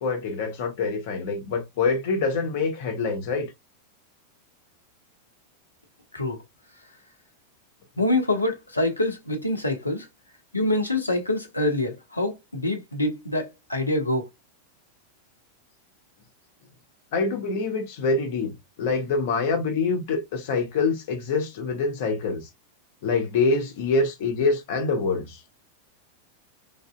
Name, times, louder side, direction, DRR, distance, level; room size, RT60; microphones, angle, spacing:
voice 1, 0.0-3.5 17.1-18.5 18.8-22.5 23.0-25.4, left 4 dB, 50° left, 1.0 m, -25 dB
voice 2, 6.1-6.4 8.0-10.1 10.5-14.3, left 2 dB, 80° left, 0.7 m, -25 dB
3.3 x 2.6 x 2.2 m
figure-of-eight pair, 90°, 0 cm